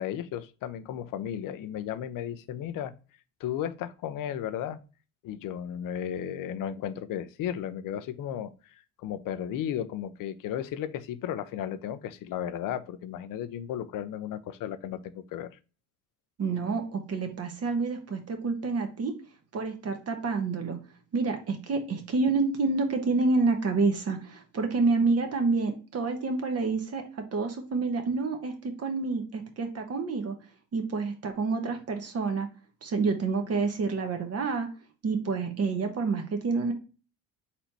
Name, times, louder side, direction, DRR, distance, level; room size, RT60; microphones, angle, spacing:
voice 1, 0.0-2.9 3.4-4.8 5.2-15.5, left 10 dB, 65° left, 0.6 m, -34 dB
voice 2, 16.4-19.1 19.5-20.8 21.1-30.4 30.7-32.5 32.8-34.7 35.0-36.7, right 4 dB, 40° right, 1.1 m, -28 dB
4.2 x 2.8 x 4.4 m
supercardioid pair, 90°, 36 cm